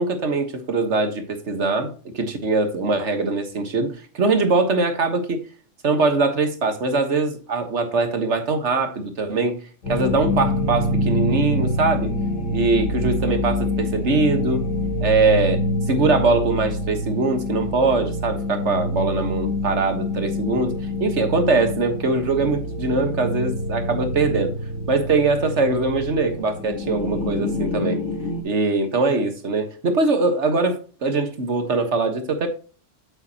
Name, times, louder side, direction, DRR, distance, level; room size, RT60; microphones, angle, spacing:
voice 1, 0.0-5.4 5.8-9.6 9.9-12.1 12.5-14.6 15.0-24.5 24.9-28.0 28.4-32.5, right 3 dB, 65° right, 1.7 m, -22 dB
sound 1, 9.8-28.4, left 1 dB, 75° left, 1.9 m, -26 dB
8.5 x 7.9 x 2.9 m
omnidirectional pair, 1.3 m